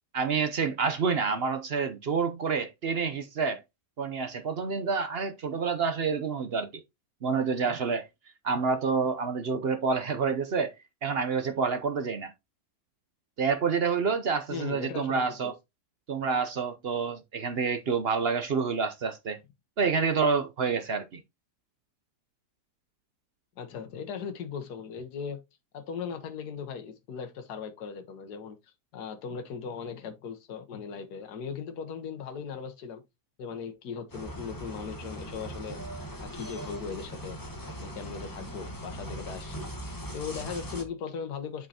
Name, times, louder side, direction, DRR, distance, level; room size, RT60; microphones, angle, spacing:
voice 1, 0.1-3.6 4.0-6.8 7.2-8.1 8.4-10.7 11.0-12.3 13.4-15.5 16.1-19.4 19.8-21.2, right 5 dB, 55° right, 0.7 m, -28 dB
voice 2, 14.5-15.5 23.6-25.4 25.7-28.6 28.9-33.0 33.4-35.8 36.2-37.4 37.8-39.7 40.1-41.7, left 6 dB, 70° left, 1.6 m, -38 dB
sound 1, 34.1-40.8, right 1 dB, 15° left, 1.0 m, -40 dB
7.7 x 5.5 x 2.8 m
omnidirectional pair, 1.8 m